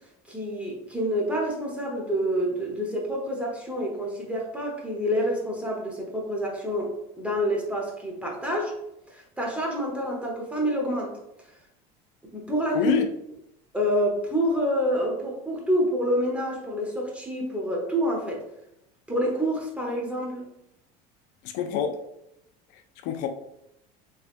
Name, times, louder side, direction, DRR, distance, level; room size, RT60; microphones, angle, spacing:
voice 1, 0.3-8.8 9.1-11.2 12.3-12.9 13.7-18.4 19.1-20.5, equal, 5° right, -2 dB, 1.0 m, -27 dB
voice 2, 12.7-13.1 21.5-22.0 22.7-23.3, left 9 dB, 70° left, 7 dB, 0.5 m, -26 dB
3.4 x 3.3 x 2.5 m, 0.80 s
supercardioid pair, 115°, 19 cm